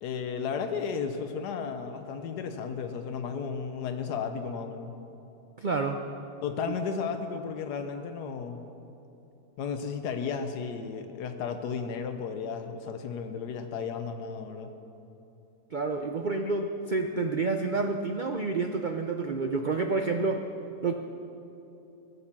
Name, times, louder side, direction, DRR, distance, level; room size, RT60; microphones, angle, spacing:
voice 1, 0.0-4.9 6.4-8.7 9.6-14.7, left 6 dB, 75° left, 7 dB, 1.4 m, -34 dB
voice 2, 5.6-6.0 6.7-6.8 15.7-20.4 20.8-20.9, right 3 dB, 90° right, 5 dB, 0.4 m, -29 dB
17.5 x 8.4 x 7.3 m, 2.9 s
omnidirectional pair, 1.8 m